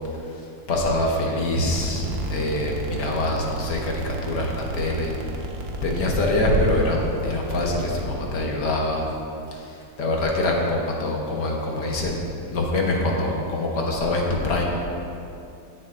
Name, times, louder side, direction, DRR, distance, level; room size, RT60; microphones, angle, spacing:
voice 1, 0.7-5.1 5.8-9.1 9.5-14.6, left 1 dB, 65° left, -1 dB, 1.7 m, -24 dB
sound 1, 1.7-8.5, right 2 dB, 55° right, 0.7 m, -33 dB
17.0 x 6.5 x 2.5 m, 2.7 s
omnidirectional pair, 1.9 m